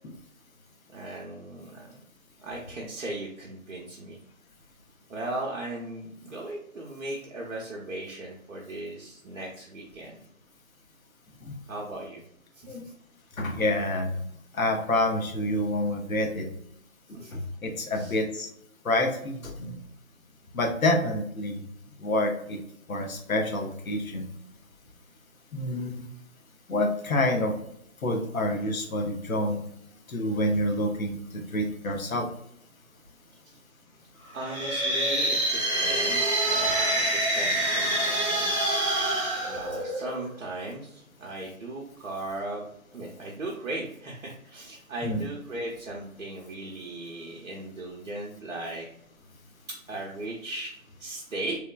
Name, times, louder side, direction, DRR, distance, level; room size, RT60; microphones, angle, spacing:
voice 1, 0.9-2.0 2.4-4.2 5.1-10.2 11.7-12.2 12.6-12.8 17.1-17.3 17.9-18.2 34.3-38.6 39.4-48.9 49.9-50.7 51.0-51.6, right 2 dB, 65° right, -3 dB, 0.7 m, -37 dB
voice 2, 13.4-14.1 14.5-16.5 17.3-18.5 18.8-19.7 20.5-21.6 22.0-22.6 22.9-24.3 25.5-26.1 26.7-27.5 28.0-29.7 30.1-32.3 45.0-45.2, left 1 dB, 75° left, 3 dB, 0.7 m, -27 dB
sound 1, 34.4-40.3, right 1 dB, 20° right, 0.6 m, -26 dB
3.0 x 2.1 x 2.3 m, 0.71 s
figure-of-eight pair, 155°, 42 cm